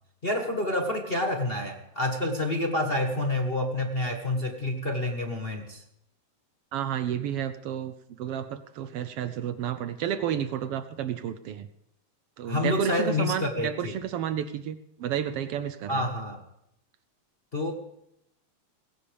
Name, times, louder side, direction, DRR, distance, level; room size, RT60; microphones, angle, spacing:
voice 1, 0.2-5.8 12.4-13.9 15.9-16.4 17.5-17.7, left 1 dB, 45° left, 2 dB, 0.7 m, -28 dB
voice 2, 6.7-11.7 12.4-16.0, right 9 dB, 75° right, 12 dB, 1.4 m, -31 dB
20.0 x 17.0 x 3.5 m, 0.80 s
omnidirectional pair, 3.4 m